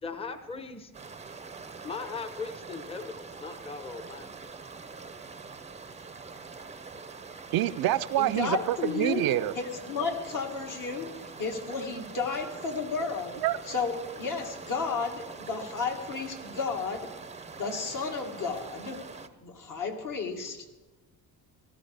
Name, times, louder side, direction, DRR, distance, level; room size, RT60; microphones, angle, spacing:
voice 1, 0.0-0.9 1.3-1.5 1.7-4.3, left 4 dB, 15° left, 9 dB, 0.8 m, -39 dB
sound 1, 0.9-19.3, right 4 dB, 20° right, 0.6 m, -44 dB
voice 2, 7.5-9.5 13.4-13.6, right 14 dB, 70° right, 13 dB, 0.5 m, -26 dB
voice 3, 8.2-9.3 9.5-11.1 11.4-13.4 13.7-17.1 17.6-19.0 19.4-20.6, left 4 dB, 55° left, 2 dB, 1.9 m, -32 dB
16.5 x 13.0 x 3.4 m, 1.2 s
cardioid pair, 115°, 37 cm